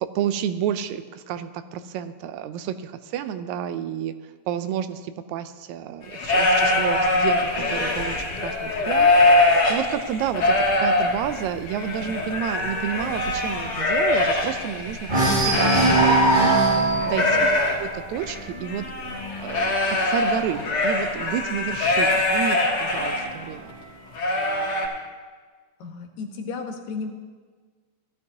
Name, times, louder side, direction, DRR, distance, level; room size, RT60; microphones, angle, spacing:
voice 1, 0.0-16.6 17.1-17.5 17.8-18.9 19.4-23.7, right 9 dB, 80° right, 11 dB, 1.9 m, -30 dB
sound 1, 6.0-16.6 16.9-23.3 23.7-23.8 24.2-24.9, left 2 dB, 50° left, 2.4 m, -23 dB
sound 2, 6.3-9.9 10.3-10.6 10.9-11.0 11.4-14.7 15.0-21.6 22.4-23.4, right 2 dB, 40° right, 0.7 m, -25 dB
voice 2, 16.7-17.1 25.8-27.1, left 4 dB, 80° left, 3 dB, 2.5 m, -34 dB
15.5 x 12.0 x 2.7 m, 1.5 s
omnidirectional pair, 3.4 m